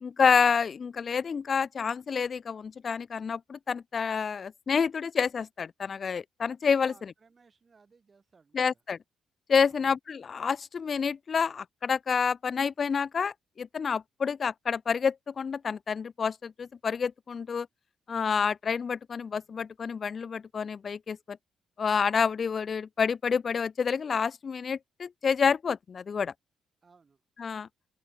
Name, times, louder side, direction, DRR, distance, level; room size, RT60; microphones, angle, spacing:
voice 1, 0.0-6.9 8.5-9.0 9.5-17.7 18.1-21.4 21.8-26.3 27.4-27.7, left 6 dB, 45° left, 0.4 m, -28 dB
voice 2, 6.8-8.8 9.5-9.9 26.8-27.2, right 4 dB, 35° right, 5.7 m, -61 dB
open air
cardioid pair, 90°, 0 cm